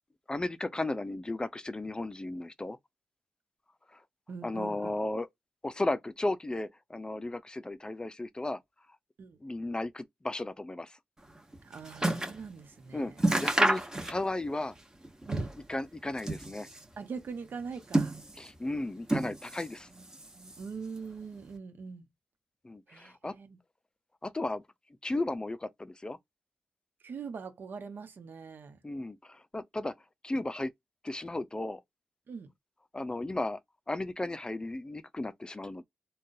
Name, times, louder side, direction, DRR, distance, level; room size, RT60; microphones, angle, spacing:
voice 1, 0.3-2.8 3.9-4.0 4.4-5.3 5.6-8.6 9.4-11.0 12.9-14.7 15.7-16.7 18.4-19.9 22.6-23.3 24.2-24.6 25.0-26.2 28.8-29.9 30.2-30.7 31.0-31.8 32.9-33.6 33.9-35.8, left 2 dB, 25° left, 0.5 m, -35 dB
voice 2, 4.3-5.0 9.2-9.4 11.6-13.3 15.3-15.5 17.0-18.2 19.9-20.0 20.3-22.1 22.9-23.6 27.0-28.8 32.3-32.5, right 5 dB, 70° right, 0.9 m, -43 dB
sound 1, 11.3-12.4 12.8-12.9 13.2-14.5 14.8-15.7 16.1-16.9 17.6-18.6 19.0-19.8 20.0-20.8 21.5-21.6, right 1 dB, 15° right, 1.2 m, -30 dB
3.7 x 2.3 x 2.6 m
cardioid pair, 50°, 4 cm